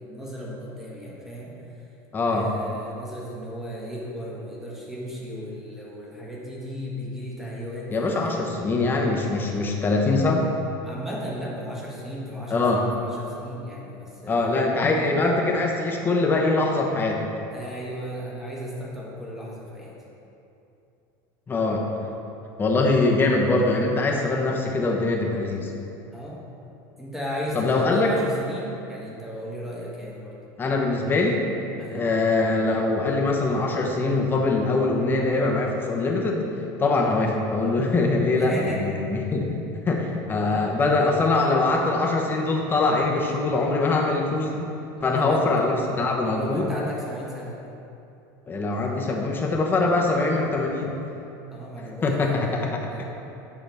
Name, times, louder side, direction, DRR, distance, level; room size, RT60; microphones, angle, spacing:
voice 1, 0.0-1.6 2.3-8.4 10.8-14.7 17.5-20.0 26.1-26.5 27.0-30.4 31.8-32.1 38.4-38.9 45.0-45.6 46.2-47.6 51.5-52.4 52.8-53.0, equal, 5° right, -5 dB, 1.5 m, -35 dB
voice 2, 2.1-2.5 7.9-10.5 12.5-12.9 14.3-17.3 21.5-21.8 22.6-25.7 27.5-28.1 30.6-31.5 31.9-36.5 36.8-44.7 45.0-46.7 48.5-50.9 52.0-53.0, left 3 dB, 20° left, 0 dB, 0.9 m, -23 dB
8.9 x 5.8 x 3.5 m, 2.8 s
supercardioid pair, 125°, 10 cm